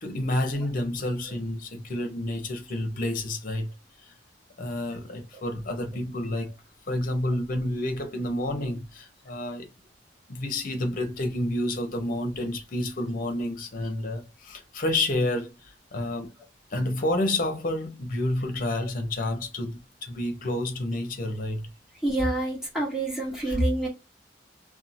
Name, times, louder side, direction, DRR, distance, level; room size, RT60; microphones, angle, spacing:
voice 1, 0.0-3.7 4.0-4.1 4.6-6.6 6.9-9.7 10.3-16.3 16.7-21.7 23.4-23.6, left 1 dB, 50° left, 0.7 m, -29 dB
voice 2, 22.0-23.9, right 1 dB, 5° right, 1.2 m, -26 dB
2.7 x 2.2 x 2.6 m
head